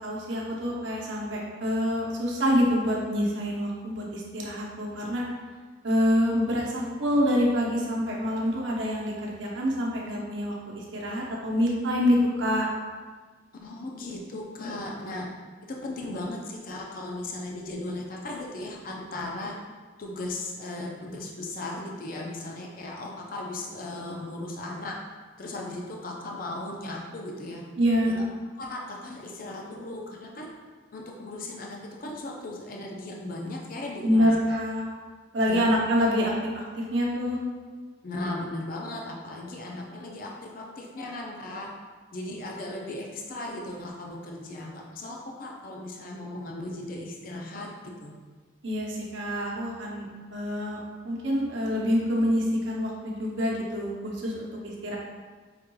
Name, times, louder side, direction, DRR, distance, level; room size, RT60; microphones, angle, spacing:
voice 1, 0.0-5.2 5.8-12.7 27.8-28.2 34.0-34.9 35.3-37.4 48.6-50.8 51.0-55.0, equal, 65° right, -3 dB, 0.8 m, -26 dB
voice 2, 13.6-15.3 15.6-19.6 20.0-25.0 25.4-27.6 28.0-28.2 28.6-30.5 30.9-34.6 35.4-35.8 38.0-41.7 42.1-48.2, left 2 dB, 45° left, -1 dB, 0.4 m, -37 dB
4.9 x 3.0 x 2.2 m, 1.4 s
head